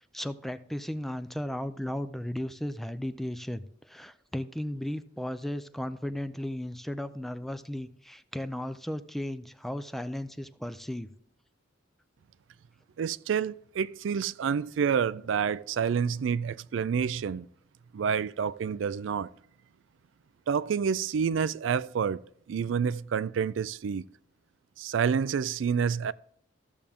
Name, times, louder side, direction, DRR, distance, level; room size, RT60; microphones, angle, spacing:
voice 1, 0.1-11.1, left 1 dB, ahead, 0.4 m, -35 dB
voice 2, 13.0-17.5 17.9-19.3 20.5-22.2 22.5-24.0 24.8-26.1, right 7 dB, 70° right, 0.4 m, -28 dB
14.0 x 7.1 x 3.5 m
head